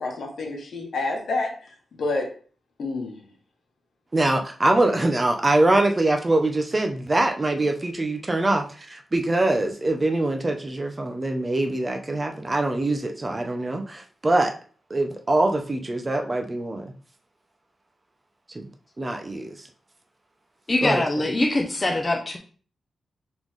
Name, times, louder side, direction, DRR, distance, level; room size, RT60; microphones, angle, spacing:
voice 1, 0.0-2.3 2.8-3.3, left 3 dB, 70° left, 1 dB, 1.2 m, -29 dB
voice 2, 4.1-14.5 14.9-16.9 18.5-18.6 19.0-19.5 20.8-21.0, right 2 dB, 20° right, 4 dB, 0.5 m, -23 dB
voice 3, 20.7-22.4, left 2 dB, 25° left, 2 dB, 0.5 m, -23 dB
3.9 x 3.6 x 3.1 m, 0.41 s
wide cardioid pair, 155°, 0 cm